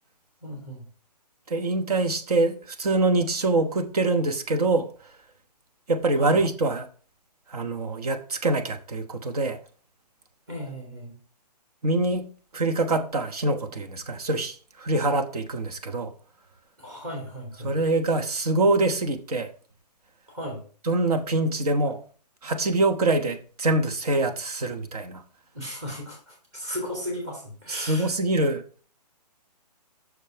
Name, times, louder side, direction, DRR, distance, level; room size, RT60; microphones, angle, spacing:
voice 1, 0.4-0.8 6.2-6.4 10.5-11.1 16.8-17.7 20.3-20.6 25.5-28.1, equal, 25° right, 2.8 m, -35 dB
voice 2, 1.5-4.9 5.9-6.9 7.5-9.6 11.8-12.2 12.5-16.1 17.6-19.5 20.8-22.0 22.4-25.2 27.7-28.6, right 2 dB, 60° right, 1.1 m, -24 dB
6.4 x 5.2 x 4.4 m
hypercardioid pair, 175°, 21 cm